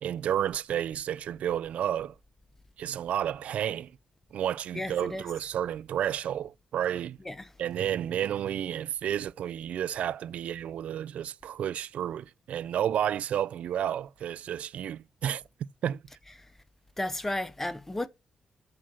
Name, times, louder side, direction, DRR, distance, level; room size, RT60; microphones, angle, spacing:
voice 1, 0.0-2.2 2.8-3.9 4.3-7.2 7.6-15.4 15.8-16.0, right 10 dB, 75° right, 0.4 m, -31 dB
voice 2, 4.7-5.2 7.2-7.5 16.4-16.5 17.0-18.1, left 1 dB, 15° left, 0.6 m, -33 dB
7.5 x 5.8 x 6.0 m
cardioid pair, 120°, 2 cm